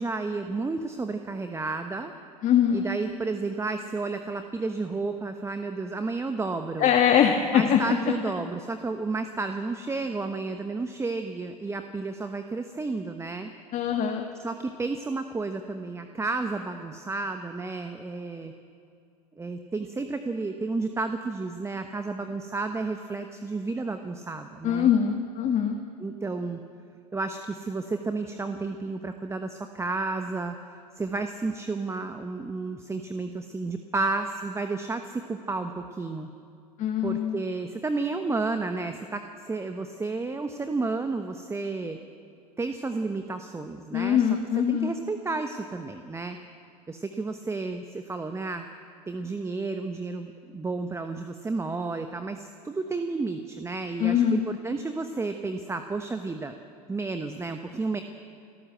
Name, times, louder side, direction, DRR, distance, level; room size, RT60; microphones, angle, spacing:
voice 1, 0.0-2.1 2.7-6.9 7.5-13.5 14.4-18.5 19.4-24.9 26.0-26.6 27.1-30.6 31.0-36.3 37.0-42.0 42.6-44.2 44.7-46.4 46.9-48.7 49.1-56.5 56.9-58.0, right 3 dB, 15° right, 7 dB, 1.0 m, -32 dB
voice 2, 2.4-2.9 6.8-7.8 13.7-14.3 24.6-25.8 36.8-37.4 43.9-44.9 54.0-54.5, left 8 dB, 35° left, 3 dB, 1.6 m, -23 dB
26.0 x 12.5 x 7.9 m, 2.4 s
hypercardioid pair, 90°, 21 cm